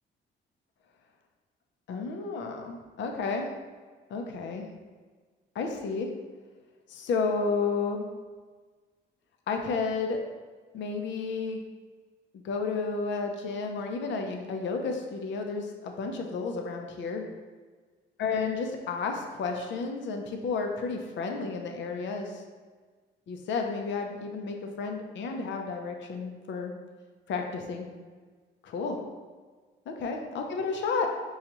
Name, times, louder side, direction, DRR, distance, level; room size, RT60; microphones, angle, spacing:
voice 1, 1.9-3.5 4.1-4.7 5.5-6.1 6.9-8.1 9.5-10.2 10.7-11.6 12.4-17.2 18.2-22.4 23.3-26.7 27.3-27.9 28.6-29.0 29.9-31.1, left 4 dB, 70° left, 3 dB, 0.6 m, -32 dB
5.4 x 2.4 x 2.9 m, 1.4 s
cardioid pair, 90°, 20 cm